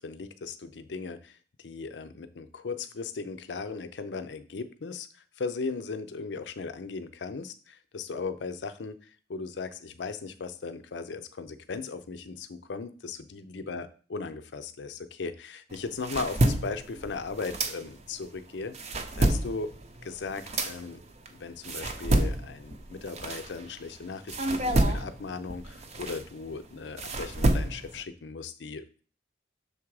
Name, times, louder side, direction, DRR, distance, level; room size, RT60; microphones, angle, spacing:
voice 1, 0.0-5.1 5.4-8.9 9.3-19.7 20.0-21.0 21.3-29.0, left 4 dB, 90° left, 10 dB, 0.5 m, -37 dB
sound 1, 15.7-18.2 18.6-23.9 24.3-28.0, right 1 dB, 40° right, 0.6 m, -29 dB
6.6 x 3.6 x 4.7 m, 0.41 s
head